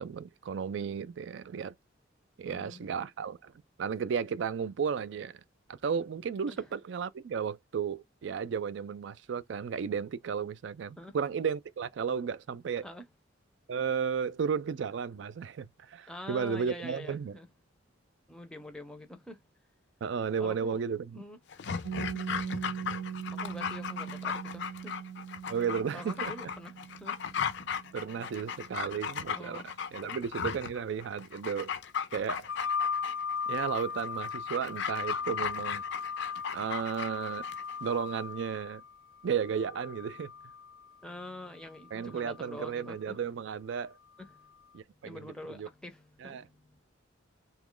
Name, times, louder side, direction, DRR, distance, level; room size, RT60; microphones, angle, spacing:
voice 1, 0.0-1.7 2.4-3.5 3.8-5.4 5.7-12.9 13.7-17.4 20.0-21.2 25.5-26.3 27.9-29.6 29.9-31.7 32.1-32.5 33.5-35.8 36.5-37.4 37.8-38.8 39.2-40.3 41.9-43.9 44.7-45.7 46.2-46.4, right 6 dB, 65° right, 0.3 m, -34 dB
voice 2, 2.4-2.8 6.5-6.7 11.0-11.1 12.8-13.0 16.1-17.5 18.3-19.4 20.4-20.8 21.1-21.4 22.1-22.5 23.4-24.9 25.9-26.7 27.0-27.1 29.3-29.6 30.0-30.2 41.0-43.2 45.0-46.4, left 1 dB, 5° left, 0.5 m, -45 dB
Dog, 21.5-37.8 38.1-38.2, left 7 dB, 60° left, 0.5 m, -37 dB
Piano, 21.8-29.1, right 8 dB, 90° right, 0.7 m, -41 dB
sound 1, 32.5-40.9 41.9-42.8, left 6 dB, 80° left, 0.8 m, -37 dB
2.9 x 2.3 x 3.7 m
head